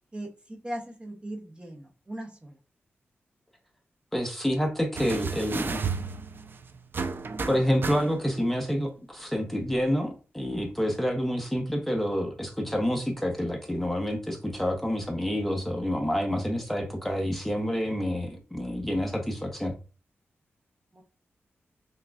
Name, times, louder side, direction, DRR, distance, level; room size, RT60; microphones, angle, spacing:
voice 1, 0.1-2.6 20.9-21.0, right 1 dB, 20° right, 0 dB, 0.8 m, -39 dB
voice 2, 4.1-5.8 7.5-19.7, equal, 5° left, 2 dB, 0.9 m, -28 dB
sound 1, 5.0-8.5 9.7-9.8, right 5 dB, 50° right, 0.4 m, -33 dB
5.9 x 2.3 x 2.4 m, 0.36 s
cardioid pair, 75°, 5 cm